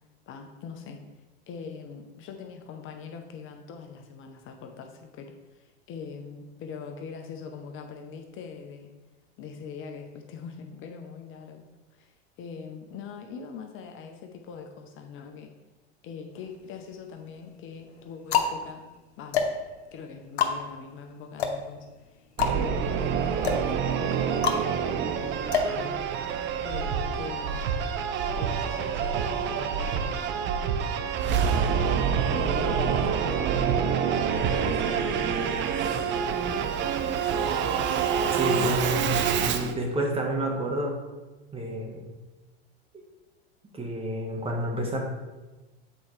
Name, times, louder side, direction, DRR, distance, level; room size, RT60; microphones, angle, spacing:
voice 1, 0.3-1.0 1.5-8.9 9.4-11.6 11.9-15.5 16.0-18.8 19.2-19.5 19.9-26.1 26.6-27.6 28.3-30.5 31.5-33.8 34.3-36.1, left 5 dB, 40° left, 4 dB, 0.7 m, -42 dB
sound 1, 16.4-17.1 17.8-26.5, left 6 dB, 90° left, 0.8 m, -30 dB
Singing / Musical instrument, 22.4-39.7, right 7 dB, 35° right, 0.5 m, -27 dB
Breathing, 26.7-27.1 27.4-27.8 28.2-28.5 28.9-29.3 29.7-30.0 30.4-30.8 31.2-31.5 31.9-32.3 32.7-33.1 33.4-33.8 34.2-34.6, right 6 dB, 70° right, 0.7 m, -31 dB
voice 2, 38.3-41.0 41.5-42.0 43.7-45.0, right 1 dB, 20° right, 1 dB, 1.2 m, -29 dB
7.8 x 4.2 x 3.2 m, 1.2 s
hypercardioid pair, 100°, 32 cm